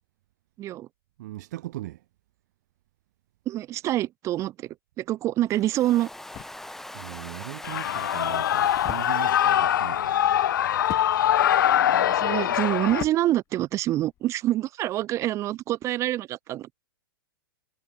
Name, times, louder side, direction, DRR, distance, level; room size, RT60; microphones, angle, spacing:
voice 1, 0.6-0.9 3.5-6.1 11.8-16.8, right 14 dB, 25° right, 0.6 m, -26 dB
voice 2, 1.2-2.0 6.9-10.2, right 16 dB, 50° right, 3.2 m, -39 dB
sound 1, 5.5-14.3, left 13 dB, 25° left, 4.8 m, -45 dB
Domestic sounds home sounds, 5.5-10.5, left 1 dB, 5° left, 1.6 m, -43 dB
Shout / Cheering, 7.6-13.0, left 11 dB, 60° left, 0.5 m, -23 dB
figure-of-eight pair, 105°, 12 cm